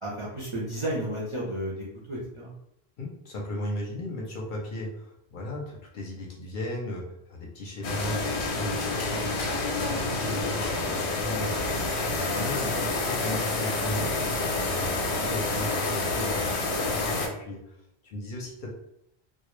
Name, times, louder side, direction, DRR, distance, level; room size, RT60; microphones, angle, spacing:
voice 1, 0.0-2.5, right 1 dB, 45° right, -6 dB, 0.4 m, -32 dB
voice 2, 3.0-14.1 14.6-18.7, left 1 dB, 60° left, -2 dB, 0.6 m, -36 dB
sound 1, 7.8-17.3, left 3 dB, 90° left, 0.8 m, -28 dB
2.2 x 2.0 x 3.0 m, 0.79 s
omnidirectional pair, 1.1 m